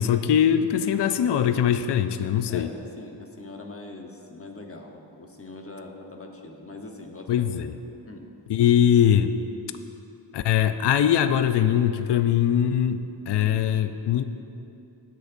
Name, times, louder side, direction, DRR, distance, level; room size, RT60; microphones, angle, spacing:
voice 1, 0.0-2.7 7.3-7.8 8.5-9.3 10.3-14.2, left 9 dB, 65° left, 10 dB, 0.5 m, -22 dB
voice 2, 2.5-7.7 8.1-8.3, left 2 dB, 30° left, 2 dB, 0.9 m, -42 dB
16.0 x 6.8 x 2.6 m, 2.7 s
wide cardioid pair, 90°, 44 cm